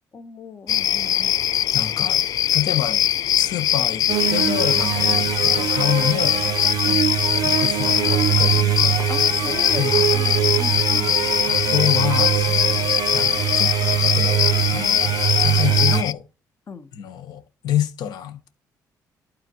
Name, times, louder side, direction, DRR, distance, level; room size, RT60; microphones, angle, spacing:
voice 1, 0.1-1.4 6.8-7.1 9.1-11.2 16.7-16.9, left 4 dB, 35° left, 1.2 m, -37 dB
sound 1, 0.7-16.1, left 11 dB, 60° left, 0.4 m, -21 dB
voice 2, 1.7-2.2 2.5-3.0 3.3-6.4 7.4-10.2 11.5-13.8 14.1-16.2 16.9-18.5, left 11 dB, 80° left, 1.2 m, -28 dB
sound 2, 4.1-16.0, right 12 dB, 65° right, 0.4 m, -23 dB
12.0 x 4.3 x 3.0 m
cardioid pair, 125°, 7 cm